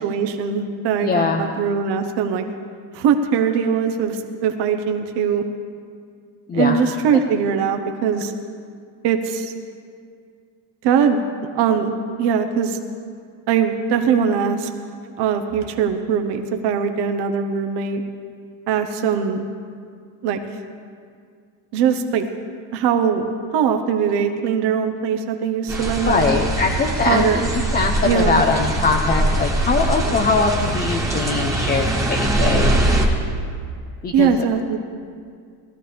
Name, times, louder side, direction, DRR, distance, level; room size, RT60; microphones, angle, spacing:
voice 1, 0.0-2.4 2.9-5.4 6.5-8.3 9.0-9.5 10.8-11.2 11.5-11.9 12.2-12.8 13.5-14.7 15.2-18.0 18.7-19.4 20.2-20.4 21.7-22.3 22.7-23.2 23.5-26.3 27.1-27.5 28.0-28.4 34.1-34.8, right 7 dB, 70° right, 7 dB, 1.0 m, -21 dB
voice 2, 1.0-1.4 6.5-6.8 7.1-7.2 26.1-27.4 27.7-32.8 34.0-34.3, left 4 dB, 25° left, 3 dB, 0.4 m, -21 dB
sound 1, 25.7-33.1, right 1 dB, 5° right, 1.3 m, -22 dB
19.5 x 14.0 x 3.4 m, 2.2 s
cardioid pair, 170°, 42 cm